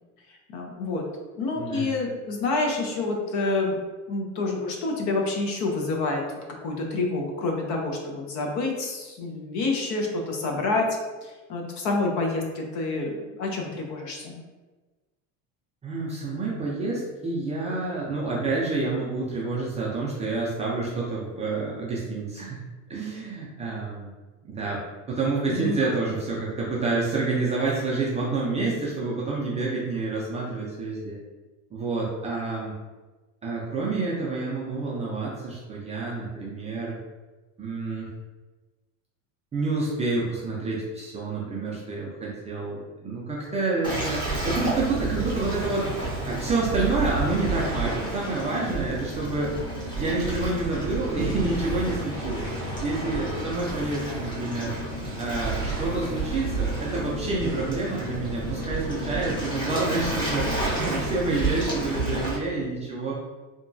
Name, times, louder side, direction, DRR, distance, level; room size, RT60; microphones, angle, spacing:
voice 1, 0.5-1.0 1.4-3.8 4.1-6.2 6.5-10.9 11.2-14.4 25.5-25.8 54.0-54.2, left 3 dB, 50° left, 1 dB, 0.6 m, -28 dB
voice 2, 1.5-1.9 15.8-22.6 22.9-24.1 24.4-24.8 25.1-31.2 31.7-32.8 33.4-37.0 37.6-38.1 39.5-45.9 46.3-49.6 49.9-52.5 52.8-54.7 55.2-63.1, right 3 dB, 20° right, -5 dB, 0.4 m, -28 dB
Waves surf, 43.8-62.4, right 2 dB, 10° left, 0.8 m, -30 dB
2.8 x 2.3 x 2.6 m, 1.2 s
cardioid pair, 135°, 37 cm